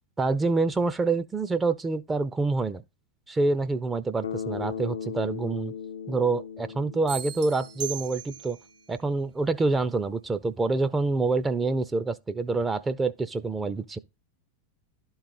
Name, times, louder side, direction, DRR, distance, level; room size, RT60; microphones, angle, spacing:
voice 1, 0.2-2.8 3.3-5.7 6.1-8.6 8.9-14.0, right 3 dB, 15° right, 0.4 m, -26 dB
Bass guitar, 4.2-8.2, left 8 dB, 65° left, 0.4 m, -37 dB
sound 1, 7.1-8.7, right 11 dB, 50° right, 0.9 m, -38 dB
11.5 x 3.9 x 4.1 m
figure-of-eight pair, 90°, 0 cm